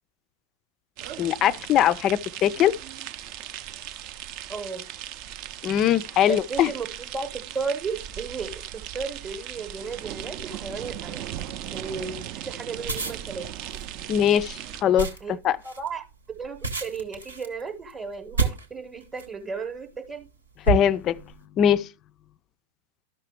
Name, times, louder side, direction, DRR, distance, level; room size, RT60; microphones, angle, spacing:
sound 1, 1.0-14.8, right 11 dB, 45° right, 0.4 m, -38 dB
voice 1, 1.2-2.7 5.6-6.7 14.1-15.1 15.4-15.6 20.7-21.2 21.6-21.9, left 10 dB, 35° left, 0.3 m, -21 dB
voice 2, 4.5-4.8 6.3-11.2 11.7-13.4 15.2-15.3 15.6-20.3, right 5 dB, 15° right, 0.8 m, -34 dB
sound 2, 12.8-19.4 20.0-20.2 20.6-21.4, right 4 dB, 80° right, 0.9 m, -30 dB
12.5 x 5.6 x 3.1 m
figure-of-eight pair, 90°, 0 cm